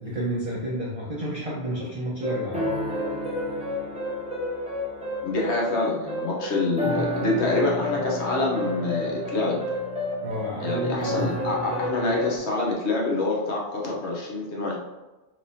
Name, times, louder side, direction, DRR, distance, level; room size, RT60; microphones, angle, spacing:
voice 1, 0.0-2.7 10.2-11.2, right 1 dB, 35° right, -6 dB, 0.8 m, -30 dB
sound 1, 2.2-12.4, left 1 dB, 10° right, 0.5 m, -30 dB
voice 2, 5.2-9.6 10.6-14.8, left 2 dB, 70° left, -3 dB, 1.2 m, -26 dB
4.4 x 3.2 x 2.7 m, 1.1 s
omnidirectional pair, 1.2 m